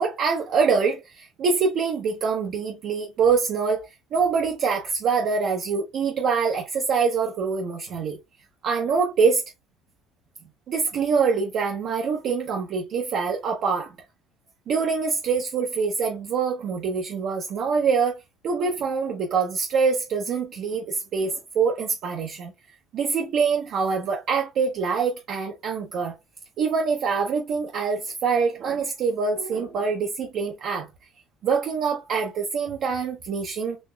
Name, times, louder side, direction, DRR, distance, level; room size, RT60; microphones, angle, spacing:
voice 1, 0.0-8.2 8.6-9.4 10.7-13.9 14.7-18.2 18.4-22.5 22.9-26.2 26.6-30.9 31.4-33.8, right 5 dB, 55° right, 0.7 m, -25 dB
4.1 x 2.8 x 2.2 m
cardioid pair, 130°, 0 cm